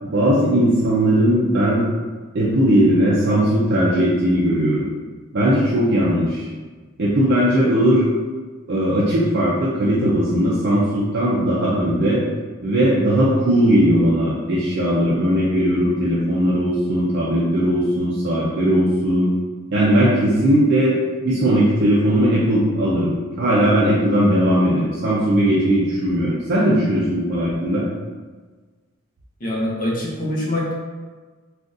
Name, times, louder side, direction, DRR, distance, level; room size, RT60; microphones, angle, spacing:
voice 1, 0.0-1.8 2.3-4.9 5.3-6.5 7.0-8.1 8.7-12.2 12.6-19.3 19.7-21.0 21.2-27.8, equal, 55° right, -7 dB, 0.5 m, -18 dB
voice 2, 29.4-30.7, left 1 dB, 45° left, -4 dB, 0.8 m, -24 dB
3.7 x 2.4 x 2.5 m, 1.4 s
head